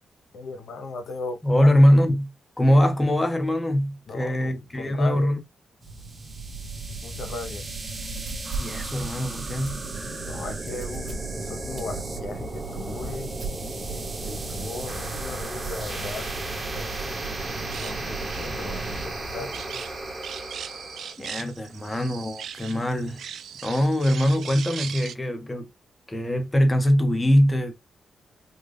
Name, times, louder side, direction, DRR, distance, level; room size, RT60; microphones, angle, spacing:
voice 1, 0.3-1.7 4.1-5.3 7.0-7.6 10.3-13.3 13.9-16.3 16.7-17.2 17.5-19.6, left 3 dB, 60° left, 0.6 m, -37 dB
voice 2, 1.4-2.3 2.6-5.4 8.6-9.8 21.2-23.2 23.6-25.7 26.1-27.7, equal, 10° left, 0.6 m, -22 dB
sound 1, 5.8-21.1, right 2 dB, 20° right, 0.9 m, -34 dB
sound 2, 7.8-15.2, right 5 dB, 40° right, 0.8 m, -39 dB
sound 3, 16.8-25.1, right 8 dB, 75° right, 0.3 m, -40 dB
3.7 x 2.2 x 3.2 m
wide cardioid pair, 160°, 0 cm